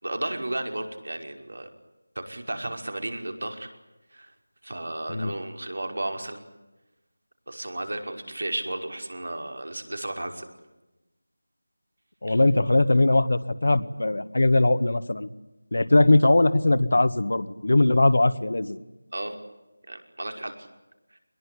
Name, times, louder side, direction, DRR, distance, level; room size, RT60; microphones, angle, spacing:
voice 1, 0.0-1.7 2.2-3.7 4.1-4.3 4.6-6.4 7.5-10.5 12.3-12.4 19.1-19.4 19.9-20.7 21.1-21.2, right 1 dB, 75° right, 5 dB, 5.5 m, -33 dB
voice 2, 12.2-15.3 15.7-18.8, left 2 dB, 60° left, 13 dB, 1.7 m, -20 dB
23.5 x 21.5 x 10.0 m, 1.0 s
figure-of-eight pair, 175°, 0 cm